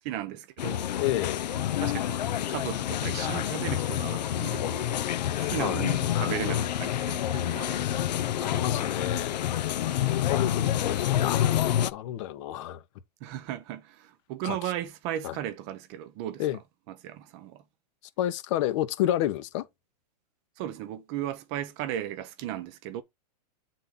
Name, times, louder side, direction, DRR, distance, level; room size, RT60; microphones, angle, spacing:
voice 1, 0.0-0.8 1.8-2.2 2.5-5.0 5.3-7.9 13.2-16.4 17.0-17.6 20.6-23.0, right 12 dB, 40° right, 1.0 m, -36 dB
sound 1, 0.6-11.9, left 11 dB, 80° left, 0.8 m, -28 dB
voice 2, 1.0-1.5 5.6-5.9 8.4-9.4 10.0-12.8 14.4-14.6 15.2-15.4 16.4-16.6 18.2-19.7, left 13 dB, 45° left, 1.1 m, -30 dB
8.2 x 4.0 x 3.9 m
hypercardioid pair, 145°, 21 cm